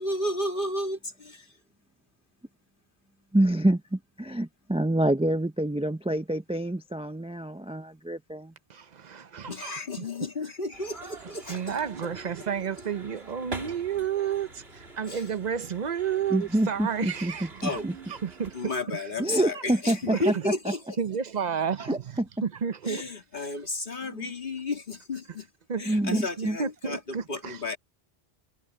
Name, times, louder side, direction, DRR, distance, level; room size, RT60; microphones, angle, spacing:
voice 1, 0.0-1.5 9.5-11.8 15.1-15.2 17.6-17.9 18.6-20.8 22.8-25.5 25.8-27.8, left 2 dB, 55° left, 2.6 m, -32 dB
voice 2, 3.3-8.5 16.3-17.9 19.2-20.7 21.9-22.3 24.0-24.3 25.9-26.6, right 1 dB, 10° right, 0.5 m, -27 dB
voice 3, 8.7-9.7 10.0-10.1 11.4-14.5 15.0-17.8 18.1-18.5 18.9-19.1 20.0-20.5 21.0-22.0 22.4-23.1 23.4-23.5 25.7-25.8 26.1-27.6, right 7 dB, 45° right, 0.8 m, -31 dB
sound 1, 10.7-18.8, right 3 dB, 75° right, 3.2 m, -45 dB
omnidirectional pair, 1.1 m